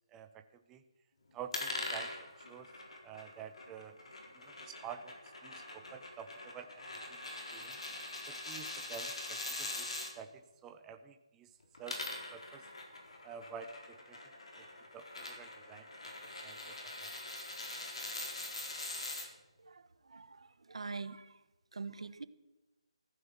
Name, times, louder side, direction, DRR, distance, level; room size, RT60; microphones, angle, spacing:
voice 1, 0.1-0.8 1.3-2.7 3.0-4.0 4.3-5.2 5.4-7.8 8.3-9.9 10.1-12.0 12.3-12.7 13.2-14.6 14.9-15.9 16.2-17.1, right 7 dB, 10° right, 7 dB, 0.5 m, -50 dB
sound 1, 1.5-10.1 11.6-19.3, left 2 dB, 70° left, 4.1 m, -43 dB
voice 2, 19.6-21.4 21.7-22.3, right 4 dB, 70° right, 14 dB, 1.1 m, -45 dB
15.0 x 9.5 x 7.3 m, 1.0 s
hypercardioid pair, 170°, 3 cm